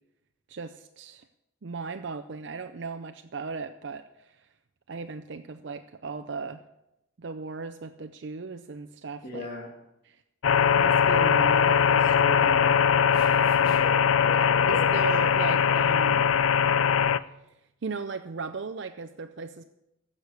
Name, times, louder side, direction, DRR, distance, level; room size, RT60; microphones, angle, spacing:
voice 1, 0.5-1.3 1.6-4.5 4.9-6.6 7.2-9.5 10.0-10.2 10.8-12.8 14.7-16.3 16.7-16.8 17.8-19.6, right 4 dB, 60° right, 8 dB, 0.5 m, -36 dB
voice 2, 9.2-9.7 13.1-14.9, left 1 dB, 45° left, -1 dB, 2.3 m, -39 dB
sound 1, 10.4-17.2, left 7 dB, 85° left, 0.5 m, -21 dB
15.0 x 6.4 x 8.2 m, 0.89 s
head